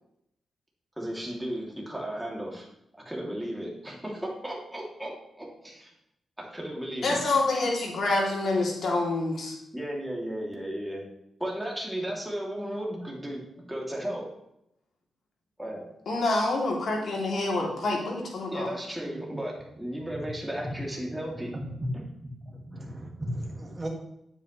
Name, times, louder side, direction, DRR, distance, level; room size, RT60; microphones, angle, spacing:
voice 1, 1.0-2.7 3.0-5.9 6.5-7.2 9.7-11.0 11.4-13.4 13.7-14.3 15.6-15.8 18.5-21.5, right 1 dB, 5° right, -3 dB, 2.7 m, -34 dB
voice 2, 7.0-9.6 16.1-18.7, left 2 dB, 65° left, -2 dB, 2.8 m, -27 dB
voice 3, 22.2-23.9, equal, 25° right, 0 dB, 2.0 m, -36 dB
8.9 x 8.2 x 3.2 m, 0.79 s
cardioid pair, 90°, 0 cm